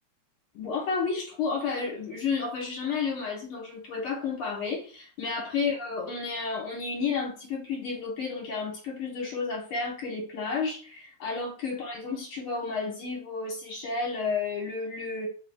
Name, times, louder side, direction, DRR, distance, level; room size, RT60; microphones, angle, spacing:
voice 1, 0.5-15.3, left 4 dB, 60° left, 1.7 m, -31 dB
3.8 x 3.8 x 2.3 m
omnidirectional pair, 3.4 m